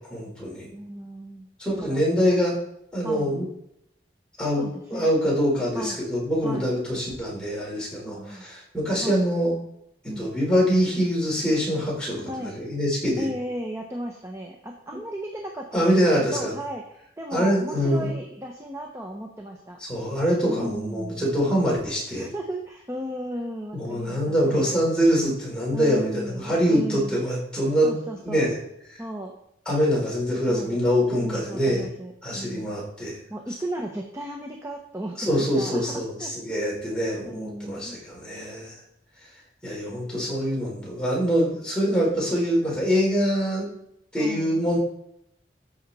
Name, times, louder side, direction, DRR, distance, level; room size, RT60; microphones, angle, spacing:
voice 1, 0.0-0.7 1.6-2.5 2.9-3.5 4.4-9.5 10.2-13.3 15.7-16.5 17.3-18.1 19.8-22.3 23.7-27.9 28.2-28.5 28.9-29.0 29.7-31.9 32.2-33.2 35.2-38.8 39.6-43.7 44.1-44.8, equal, 5° left, -5 dB, 4.6 m, -24 dB
voice 2, 0.7-1.5 1.8-2.0 3.0-3.4 4.6-5.1 5.7-6.0 6.4-6.7 8.0-8.5 9.0-9.2 10.0-10.3 12.3-12.6 13.2-19.8 20.4-21.3 22.2-24.7 25.7-27.2 27.8-28.5 29.0-29.3 30.5-30.8 31.2-32.7 33.3-36.3 37.2-38.0 44.2-44.6, right 1 dB, 15° right, 2 dB, 0.9 m, -35 dB
14.0 x 6.6 x 4.2 m, 0.76 s
head